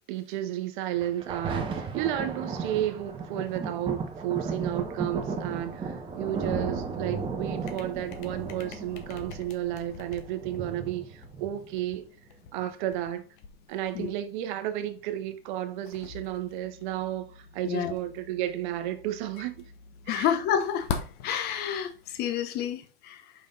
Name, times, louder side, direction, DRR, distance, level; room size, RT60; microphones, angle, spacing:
voice 1, 0.1-12.0 12.5-13.2 13.7-19.6 20.1-20.3, right 12 dB, 50° right, 1.1 m, -32 dB
Thunder, 1.0-12.0 12.6-12.7, right 4 dB, 15° right, 1.1 m, -35 dB
sound 1, 7.6-22.4, left 6 dB, 50° left, 1.2 m, -44 dB
voice 2, 20.1-20.9 21.2-23.3, left 9 dB, 30° left, 0.9 m, -29 dB
5.5 x 4.9 x 3.9 m
hypercardioid pair, 130°, 32 cm